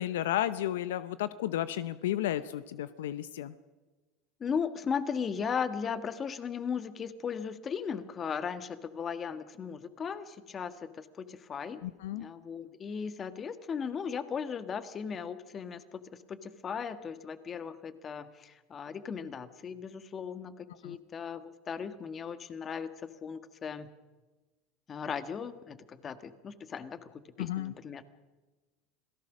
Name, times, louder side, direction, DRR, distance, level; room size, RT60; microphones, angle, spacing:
voice 1, 0.0-3.5 11.8-12.3 20.8-21.0 27.4-27.7, left 12 dB, 80° left, 15 dB, 0.7 m, -33 dB
voice 2, 4.4-11.9 12.1-16.0 16.3-23.9 24.9-28.0, left 6 dB, 30° left, 11 dB, 1.6 m, -37 dB
27.0 x 17.5 x 6.2 m, 1.2 s
hypercardioid pair, 95°, 0 cm